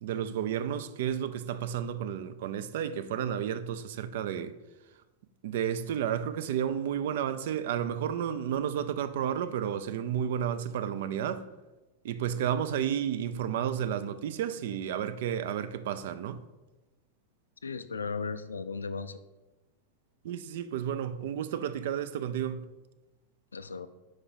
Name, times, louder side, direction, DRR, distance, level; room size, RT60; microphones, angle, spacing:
voice 1, 0.0-4.5 5.4-11.4 12.0-16.4 20.2-22.7, right 9 dB, 55° right, 0.3 m, -32 dB
voice 2, 17.6-19.2 23.5-23.9, left 4 dB, 75° left, 0.3 m, -36 dB
4.8 x 4.6 x 4.4 m
figure-of-eight pair, 90°, 0 cm